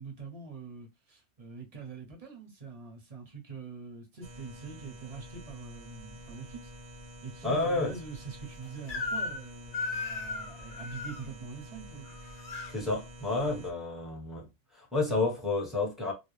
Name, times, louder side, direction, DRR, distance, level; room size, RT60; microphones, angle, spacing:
voice 1, 0.0-6.7 7.2-12.1, right 4 dB, 35° right, 0.7 m, -44 dB
sound 1, 4.2-13.7, equal, 65° right, 0.4 m, -48 dB
voice 2, 7.4-7.9 12.7-14.5 14.7-16.1, left 3 dB, ahead, 0.7 m, -30 dB
Crying sobbing / Screech, 8.9-9.4 9.7-11.2 12.0-12.7, left 3 dB, 60° left, 0.5 m, -36 dB
2.4 x 2.0 x 3.0 m
omnidirectional pair, 1.3 m